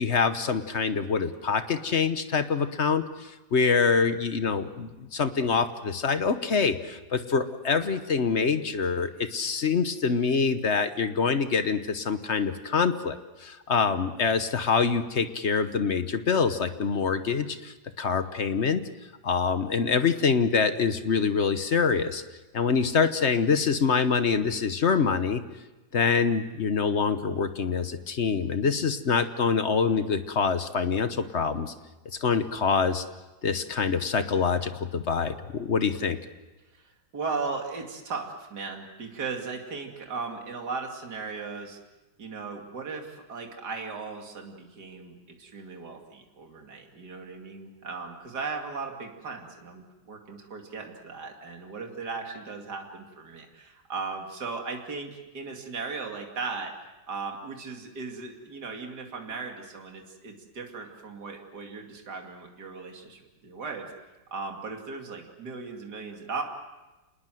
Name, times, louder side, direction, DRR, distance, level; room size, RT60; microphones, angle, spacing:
voice 1, 0.0-18.8 19.2-22.2 22.5-25.4 25.9-31.7 32.2-33.0 33.4-36.2, left 5 dB, 45° left, 10 dB, 1.1 m, -25 dB
voice 2, 36.7-41.8 42.2-56.7 57.1-63.9 64.3-66.4, right 4 dB, 60° right, 2 dB, 3.0 m, -37 dB
27.5 x 20.0 x 7.7 m, 1.1 s
omnidirectional pair, 2.0 m